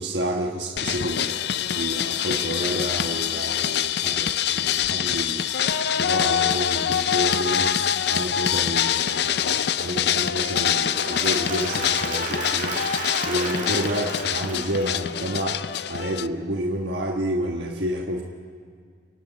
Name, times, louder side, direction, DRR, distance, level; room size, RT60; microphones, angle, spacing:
voice 1, 0.0-1.4 1.8-5.4 6.0-7.7 8.1-12.8 13.3-15.6 15.9-18.2, equal, 70° right, 1 dB, 1.4 m, -29 dB
sound 1, 0.8-16.3, left 9 dB, 65° left, 0.5 m, -25 dB
Applause / Crowd, 10.6-15.5, right 4 dB, 45° right, 2.5 m, -34 dB
29.5 x 11.0 x 8.3 m, 2.1 s
head